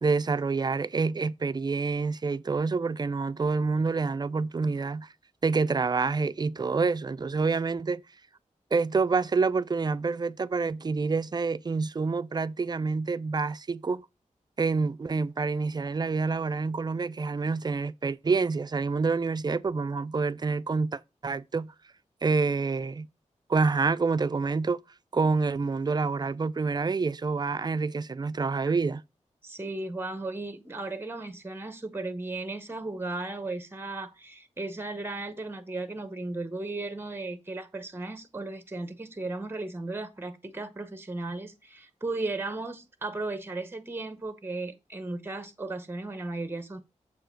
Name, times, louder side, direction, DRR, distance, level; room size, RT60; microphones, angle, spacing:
voice 1, 0.0-5.1 5.4-8.0 8.7-14.1 14.6-21.7 22.2-23.1 23.5-24.8 25.1-29.0, right 4 dB, 35° right, 0.4 m, -27 dB
voice 2, 29.4-46.8, right 2 dB, 15° right, 0.8 m, -35 dB
7.0 x 4.7 x 4.5 m
wide cardioid pair, 100°, 13 cm